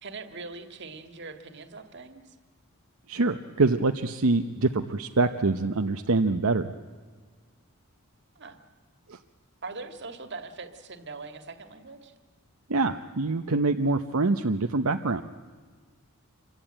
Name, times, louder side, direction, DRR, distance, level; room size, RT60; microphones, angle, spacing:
voice 1, 0.0-2.4 8.4-8.6 9.6-12.1, right 3 dB, 55° right, 8 dB, 2.0 m, -41 dB
voice 2, 3.1-6.7 9.1-9.2 12.7-15.2, right 3 dB, 75° right, 7 dB, 0.9 m, -25 dB
27.0 x 24.0 x 9.0 m, 1.5 s
head